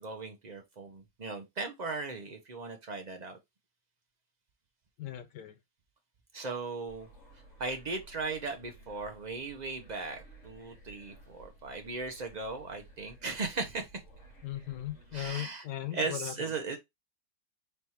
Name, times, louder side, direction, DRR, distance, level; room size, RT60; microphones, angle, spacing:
voice 1, 0.0-3.4 6.3-7.1 7.6-14.0 15.1-15.6 15.9-16.8, right 3 dB, 70° right, 0.4 m, -37 dB
voice 2, 5.0-5.5 14.4-16.6, left 12 dB, 80° left, 1.4 m, -38 dB
sound 1, 6.9-15.3, right 2 dB, 45° left, 2.4 m, -55 dB
4.3 x 3.4 x 2.9 m
omnidirectional pair, 1.8 m